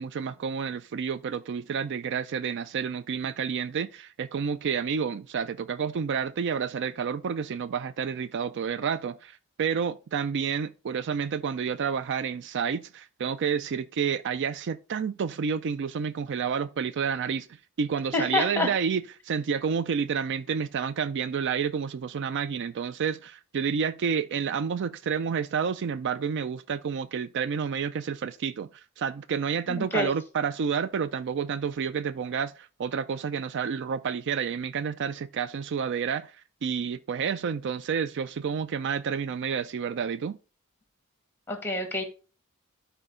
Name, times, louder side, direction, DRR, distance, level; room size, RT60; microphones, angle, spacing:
voice 1, 0.0-17.5 17.8-28.7 29.0-36.3 36.6-40.4, right 6 dB, 55° right, 0.4 m, -29 dB
voice 2, 18.1-18.7 29.7-30.1 41.5-42.0, left 2 dB, 10° left, 1.9 m, -27 dB
12.0 x 4.5 x 3.7 m
head